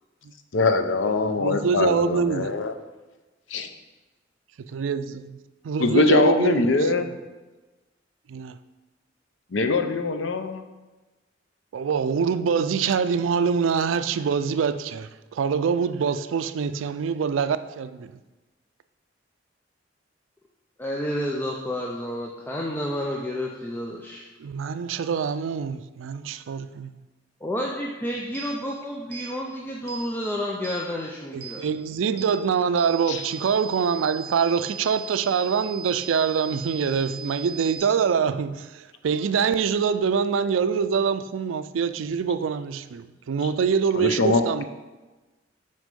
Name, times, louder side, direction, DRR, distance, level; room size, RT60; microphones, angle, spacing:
voice 1, 0.5-2.7 3.5-3.7 5.8-7.1 9.5-10.6 33.1-33.2 43.9-44.4, left 3 dB, 75° left, 0.6 m, -22 dB
voice 2, 1.4-2.5 4.7-5.4 5.6-6.9 8.3-8.6 11.7-18.1 24.4-26.9 31.3-44.6, right 6 dB, 90° right, 0.4 m, -25 dB
voice 3, 20.8-24.2 27.4-31.6, equal, 10° left, 0.5 m, -30 dB
sound 1, 28.3-28.5 29.1-29.3 29.9-30.0 30.6-30.8 31.4-31.6 32.2-32.3 32.8-37.8, right 6 dB, 60° right, 0.8 m, -39 dB
6.2 x 4.4 x 5.2 m
head